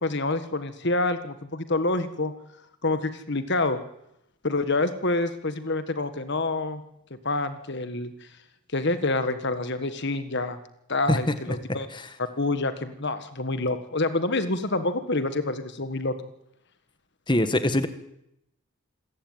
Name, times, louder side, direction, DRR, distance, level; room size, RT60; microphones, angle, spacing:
voice 1, 0.0-2.3 2.8-3.8 4.4-6.8 7.2-8.1 8.7-10.6 10.9-11.9 12.4-16.1, left 2 dB, 50° left, 11 dB, 1.5 m, -27 dB
voice 2, 17.3-17.9, left 1 dB, 20° left, 11 dB, 1.6 m, -22 dB
27.0 x 15.0 x 9.5 m, 0.83 s
head